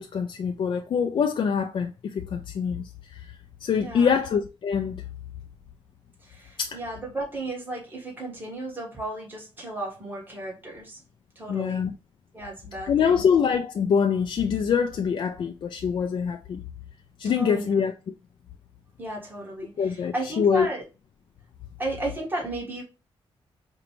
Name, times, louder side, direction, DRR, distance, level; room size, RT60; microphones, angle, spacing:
voice 1, 0.0-3.2 3.6-5.0 6.6-6.8 11.5-11.9 12.8-16.6 17.2-18.1 19.8-20.7, left 7 dB, 55° left, 0.3 m, -25 dB
voice 2, 3.8-4.1 6.2-11.0 11.3-11.9 12.3-13.2 17.2-17.7 19.0-20.8 21.8-22.8, right 1 dB, 20° right, 1.4 m, -34 dB
5.0 x 2.2 x 2.9 m
wide cardioid pair, 150°, 10 cm